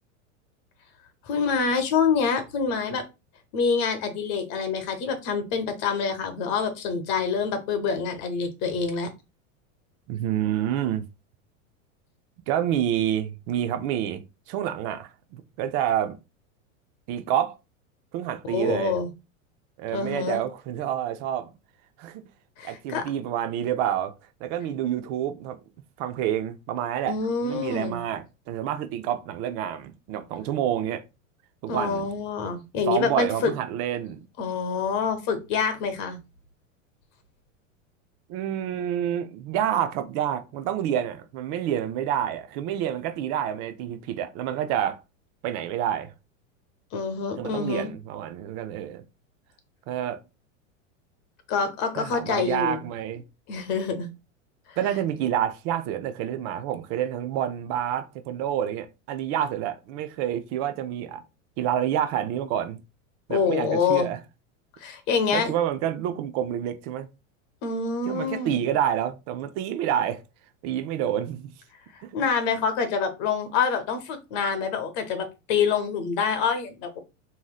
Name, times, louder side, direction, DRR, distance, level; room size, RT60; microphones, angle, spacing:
voice 1, 1.2-3.0 3.5-9.1 18.5-19.1 19.9-20.4 22.6-23.1 27.1-28.0 31.7-33.5 34.4-36.2 46.9-47.9 51.5-52.8 53.5-54.1 54.7-54.8 63.3-64.1 64.8-65.5 67.6-68.6 71.9-77.0, left 5 dB, 45° left, 0.9 m, -26 dB
voice 2, 10.1-11.0 12.5-14.2 14.5-16.2 17.1-17.5 18.1-19.0 19.8-21.5 22.0-22.2 22.6-24.1 24.4-25.6 26.0-27.2 27.4-31.0 31.6-32.1 32.9-34.3 38.3-45.0 45.4-46.1 47.4-49.0 49.9-50.2 52.0-53.2 54.8-61.2 61.6-62.8 63.3-64.2 65.3-67.1 68.1-70.2 70.6-71.5 72.0-72.1, right 10 dB, 40° right, 0.5 m, -28 dB
3.1 x 2.7 x 2.2 m
supercardioid pair, 120°, 39 cm